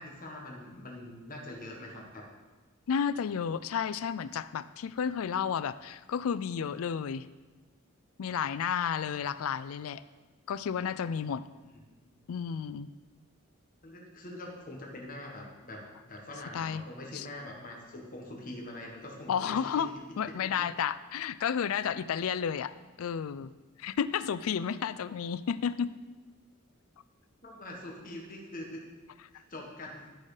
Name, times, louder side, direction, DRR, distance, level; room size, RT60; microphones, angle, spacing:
voice 1, 0.0-2.3 11.7-12.1 13.8-19.9 20.2-20.7 25.1-25.3 27.4-28.8 29.3-30.1, left 1 dB, 40° left, -1 dB, 1.5 m, -44 dB
voice 2, 2.9-7.3 8.2-10.0 10.5-11.4 12.3-12.9 16.5-16.8 17.1-17.3 19.3-22.7 23.0-23.5 23.8-25.9, left 7 dB, 70° left, 15 dB, 0.4 m, -32 dB
13.0 x 4.4 x 5.0 m, 1.2 s
head